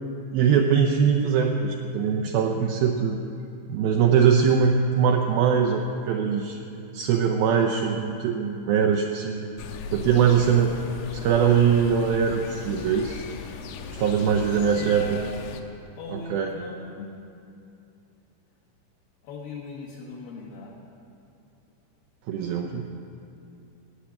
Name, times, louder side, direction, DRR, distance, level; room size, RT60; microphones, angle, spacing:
voice 1, 0.3-3.2 3.7-6.6 6.9-9.5 9.9-10.8 11.1-13.2 13.9-15.0 16.1-16.5 22.3-22.8, right 7 dB, 80° right, 2 dB, 2.2 m, -22 dB
sound 1, 9.6-15.6, left 6 dB, 90° left, 2.9 m, -38 dB
voice 2, 14.4-15.4 16.0-17.1 19.2-20.9, left 4 dB, 65° left, -4 dB, 2.6 m, -39 dB
13.0 x 9.0 x 8.7 m, 2.6 s
omnidirectional pair, 4.9 m